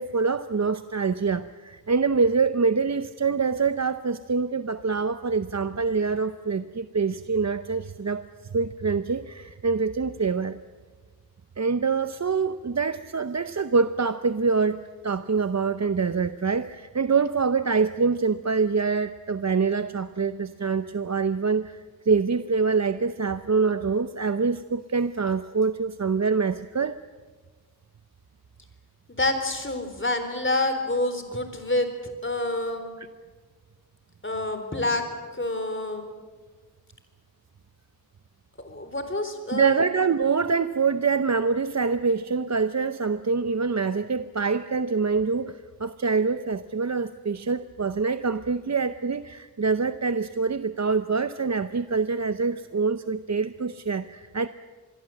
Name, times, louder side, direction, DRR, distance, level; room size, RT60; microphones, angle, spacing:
voice 1, 0.0-8.2 8.5-10.6 11.6-27.0 33.0-33.1 39.5-54.5, right 5 dB, 45° right, 11 dB, 0.7 m, -25 dB
voice 2, 29.1-31.9 32.2-32.9 34.2-35.0 35.4-36.0 38.6-39.8, left 2 dB, 30° left, 7 dB, 4.0 m, -27 dB
26.0 x 21.5 x 7.8 m, 1.4 s
wide cardioid pair, 70°, 37 cm